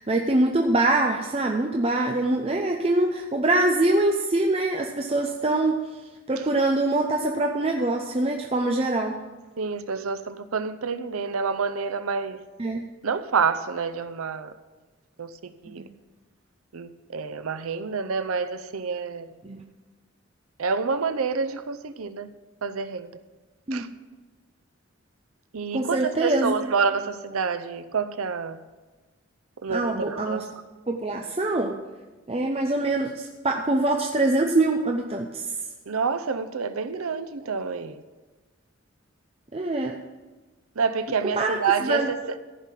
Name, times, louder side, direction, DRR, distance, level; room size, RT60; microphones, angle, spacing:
voice 1, 0.0-5.8 6.3-9.2 12.6-12.8 15.7-15.9 19.4-19.6 23.7-23.9 25.7-26.6 29.7-30.5 30.9-31.8 32.3-35.5 39.5-40.0 41.4-42.1, right 2 dB, 30° right, 2 dB, 0.6 m, -24 dB
voice 2, 9.6-12.4 13.0-14.5 15.2-15.8 16.7-19.3 20.6-22.3 22.6-23.1 23.7-23.9 25.5-28.6 29.6-30.4 35.9-38.0 40.8-42.2, right 5 dB, 90° right, 11 dB, 0.6 m, -28 dB
14.5 x 5.7 x 7.5 m, 1.2 s
head